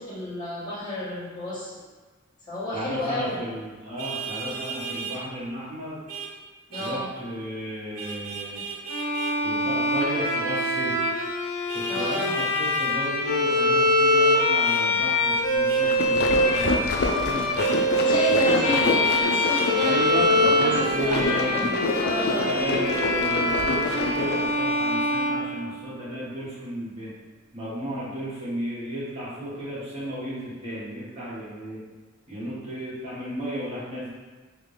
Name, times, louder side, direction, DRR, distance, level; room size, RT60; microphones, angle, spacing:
voice 1, 0.0-1.7 2.5-3.4 6.7-7.1 11.9-12.3 18.0-22.5, left 1 dB, 20° left, -12 dB, 1.4 m, -31 dB
voice 2, 2.7-6.0 6.8-8.6 9.4-10.9 11.9-17.4 18.4-18.8 19.8-21.7 22.2-27.1 27.5-31.8 32.3-34.1, equal, 30° right, -10 dB, 1.3 m, -33 dB
Vehicle horn car horn honking, 4.0-5.2 6.1-6.3 6.7-7.0 8.0-9.4 11.7-13.0 14.6-14.8 15.7-15.8 16.5-16.7 17.5-17.8 18.8-19.7, right 5 dB, 85° right, 0.8 m, -36 dB
Bowed string instrument, 8.9-26.1, left 1 dB, 85° left, 0.7 m, -24 dB
sound 1, 15.6-24.6, left 3 dB, 50° left, 0.4 m, -28 dB
3.4 x 2.7 x 3.3 m, 1.4 s
head